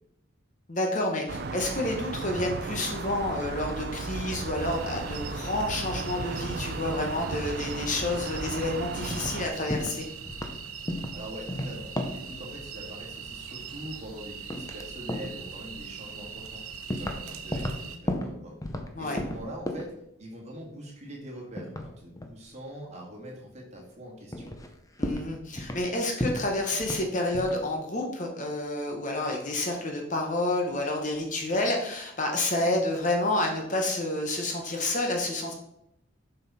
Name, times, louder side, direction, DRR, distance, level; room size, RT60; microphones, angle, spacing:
voice 1, 0.7-10.1 18.9-19.2 25.0-35.5, left 2 dB, 35° left, 1 dB, 1.2 m, -29 dB
sound 1, 1.3-9.5, right 3 dB, 50° right, 0.5 m, -35 dB
sound 2, 4.6-18.0, right 6 dB, 85° right, 0.9 m, -42 dB
sound 3, 9.1-9.4 9.7-10.0 10.3-10.6 10.9-11.2 11.5-12.3 13.5-14.2 14.5-14.8 15.1-15.4 16.1-16.2 16.9-17.2 17.5-18.9 19.2-20.0 21.6-22.4 23.8-23.9 24.3-24.7 25.0-25.9 26.2-27.1 27.3-27.6, left 1 dB, 15° left, 0.7 m, -33 dB
voice 2, 10.8-16.6 17.0-18.5 19.0-19.9 20.2-24.5, right 1 dB, 30° right, -2 dB, 2.1 m, -43 dB
7.3 x 5.7 x 4.3 m, 0.78 s
head